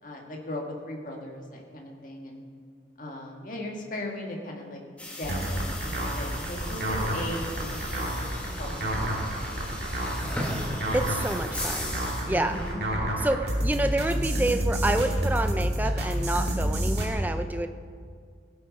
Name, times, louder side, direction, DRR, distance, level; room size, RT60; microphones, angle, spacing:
voice 1, 0.0-2.4 3.0-4.8 5.2-9.2 12.3-12.8, left 1 dB, 45° left, 0 dB, 1.9 m, -38 dB
sound 1, 5.0-12.7, left 1 dB, 5° left, 1.9 m, -37 dB
sound 2, 5.2-17.1, equal, 60° right, 2.7 m, -29 dB
voice 2, 10.9-11.9 12.3-12.6 13.2-17.7, right 1 dB, 10° right, 7 dB, 0.5 m, -28 dB
17.5 x 8.0 x 5.4 m, 2.1 s
head